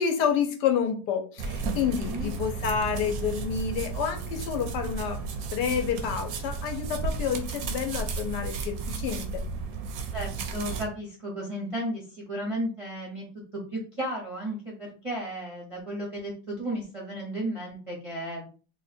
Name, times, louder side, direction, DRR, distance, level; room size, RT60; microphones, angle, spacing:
voice 1, 0.0-9.3, left 7 dB, 80° left, 5 dB, 1.2 m, -29 dB
sound 1, 1.4-10.9, right 4 dB, 70° right, 0.9 m, -33 dB
voice 2, 10.1-13.3 13.7-18.5, right 1 dB, 30° right, -2 dB, 0.5 m, -34 dB
3.1 x 2.1 x 4.2 m, 0.37 s
omnidirectional pair, 1.9 m